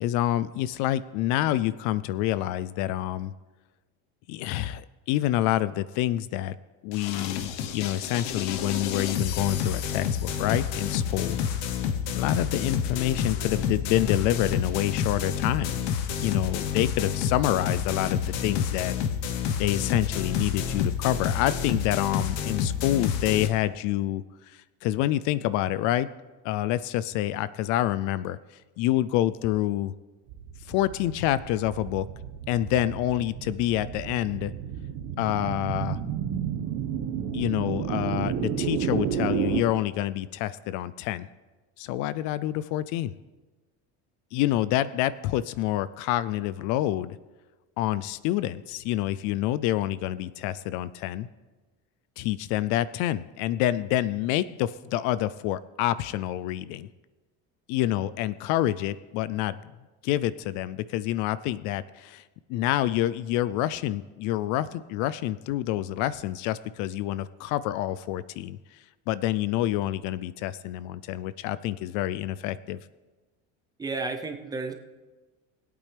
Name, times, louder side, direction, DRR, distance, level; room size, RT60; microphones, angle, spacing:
voice 1, 0.0-3.3 4.3-6.6 6.8-11.4 12.2-15.8 16.2-18.9 19.6-26.1 26.4-28.4 28.8-29.9 30.7-32.1 32.5-34.5 35.2-36.0 37.3-41.3 41.8-43.1 44.3-47.2 47.8-51.3 52.2-56.9 57.7-59.6 60.0-62.2 62.5-72.8, left 13 dB, 60° left, 17 dB, 0.4 m, -27 dB
sound 1, 6.9-23.5, left 7 dB, 90° left, 1.1 m, -29 dB
sound 2, 30.3-39.6, right 8 dB, 55° right, 1.2 m, -32 dB
voice 2, 73.8-74.7, right 3 dB, 10° right, 5 dB, 0.6 m, -32 dB
20.5 x 8.7 x 3.4 m, 1.2 s
cardioid pair, 160°, 34 cm